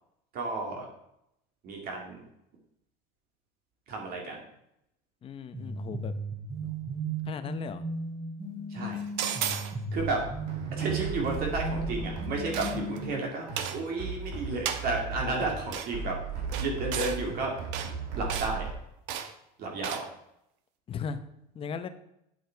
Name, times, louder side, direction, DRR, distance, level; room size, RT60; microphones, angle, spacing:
voice 1, 0.3-0.9 1.6-2.2 3.9-4.4 8.7-9.1 9.9-10.2 10.8-17.6 18.1-18.7 19.6-20.1, right 3 dB, 50° right, 0 dB, 2.3 m, -32 dB
voice 2, 5.2-6.1 6.6-6.8 7.2-7.8 20.9-21.2 21.5-21.9, left 6 dB, 25° left, 10 dB, 0.8 m, -37 dB
sound 1, 5.5-13.1, right 3 dB, 30° right, 2.9 m, -36 dB
sound 2, 9.2-9.7 12.5-13.0 13.6-13.8 14.7-14.9 15.7-15.9 16.5-17.2 17.7-17.9 18.3-18.5 19.1-19.3 19.8-20.1, right 9 dB, 65° right, 1.1 m, -33 dB
sound 3, 10.0-18.7, right 3 dB, 85° right, 2.2 m, -37 dB
8.9 x 7.9 x 4.6 m, 0.79 s
cardioid pair, 145°, 20 cm